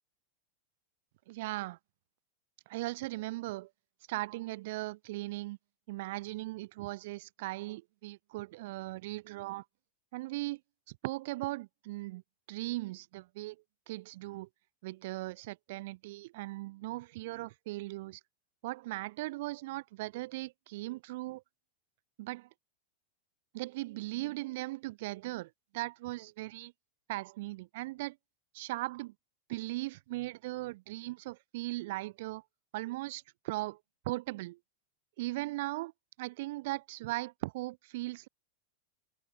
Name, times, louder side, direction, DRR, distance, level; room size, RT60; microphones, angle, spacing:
voice 1, 1.3-1.8 2.7-3.7 4.1-5.6 5.9-9.7 10.1-10.6 10.9-12.2 12.5-14.5 14.8-18.2 18.6-21.4 22.2-22.5 23.5-26.7 27.1-28.2 28.5-29.1 29.5-32.4 32.7-34.6 35.2-35.9 36.2-38.3, right 19 dB, 50° right, 0.7 m, -38 dB
figure-of-eight pair, 90°, 0 cm